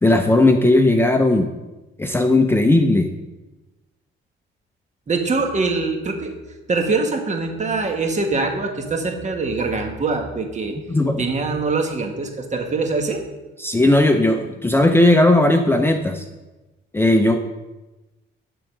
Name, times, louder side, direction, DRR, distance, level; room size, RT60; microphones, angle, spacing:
voice 1, 0.0-1.5 2.0-3.1 10.9-11.2 13.6-16.2 16.9-17.4, left 2 dB, 10° left, 5 dB, 0.6 m, -16 dB
voice 2, 5.1-6.4 6.7-10.7 11.2-13.2, right 3 dB, 35° right, 4 dB, 1.4 m, -23 dB
9.7 x 3.8 x 6.0 m, 1.1 s
cardioid pair, 90°, 20 cm